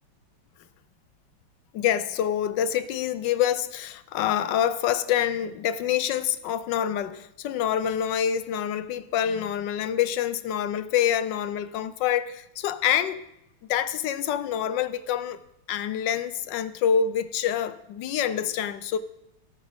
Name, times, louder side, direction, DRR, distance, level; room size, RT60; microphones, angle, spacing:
voice 1, 1.7-13.2 13.7-15.4 15.7-19.0, left 9 dB, 70° left, 1.2 m, -26 dB
17.0 x 8.9 x 3.6 m
omnidirectional pair, 2.1 m